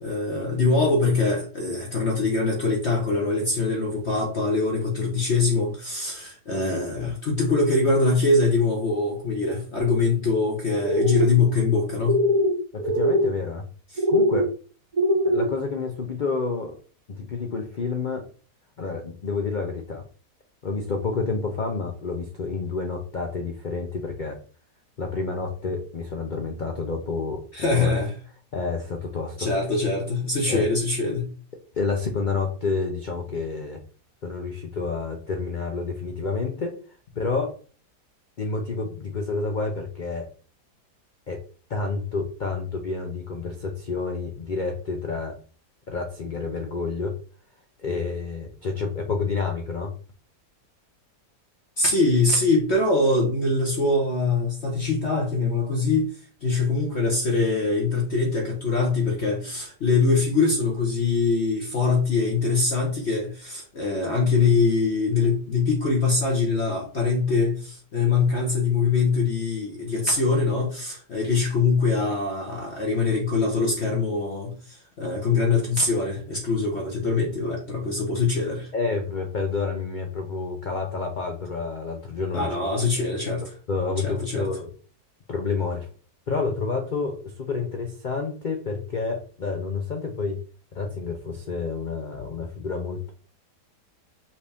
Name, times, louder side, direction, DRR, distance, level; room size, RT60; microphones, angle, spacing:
voice 1, 0.0-12.2 13.9-14.0 27.5-28.1 29.4-31.3 51.8-56.1 56.4-78.7 82.3-83.5 84.0-84.5, left 3 dB, 45° left, -1 dB, 1.1 m, -23 dB
sound 1, 10.8-11.3 12.0-12.5 12.8-13.3 14.0-14.4 14.9-15.5, equal, 30° right, 0.7 m, -21 dB
voice 2, 12.7-13.6 14.1-14.5 15.2-16.7 17.1-18.2 18.8-20.0 20.6-24.4 25.0-28.0 28.5-29.5 30.5-30.7 31.7-33.8 34.2-36.8 37.1-37.6 38.4-40.3 41.3-41.4 41.7-45.4 45.9-47.2 47.8-49.9 78.7-82.9 83.7-84.7 85.3-85.9 86.3-90.4 90.7-93.1, left 4 dB, 70° left, 3 dB, 0.4 m, -29 dB
5.5 x 2.7 x 3.4 m, 0.40 s
omnidirectional pair, 1.8 m